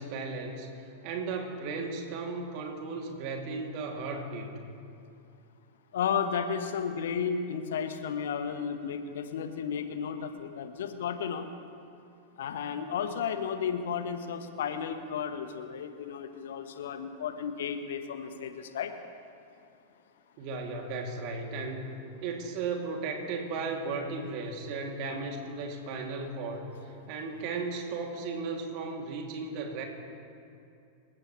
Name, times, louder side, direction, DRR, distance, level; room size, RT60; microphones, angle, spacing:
voice 1, 0.0-4.6 20.4-21.9 22.2-26.7 27.1-29.8, right 4 dB, 45° right, 2 dB, 2.6 m, -35 dB
voice 2, 5.9-11.5 12.4-18.9, left 7 dB, 60° left, 8 dB, 1.2 m, -33 dB
26.5 x 15.5 x 3.2 m, 2.5 s
figure-of-eight pair, 90°, 0 cm